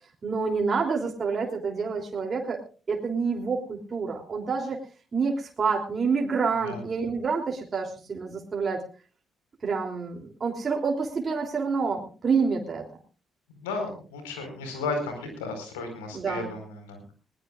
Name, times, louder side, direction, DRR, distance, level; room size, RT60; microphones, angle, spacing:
voice 1, 0.2-2.6 2.9-4.8 5.1-8.8 9.6-12.8 16.1-16.5, right 5 dB, 45° right, 1 dB, 3.2 m, -28 dB
voice 2, 13.5-17.0, left 3 dB, 85° left, 5 dB, 4.8 m, -34 dB
20.5 x 19.5 x 2.5 m, 0.37 s
hypercardioid pair, 45°, 0 cm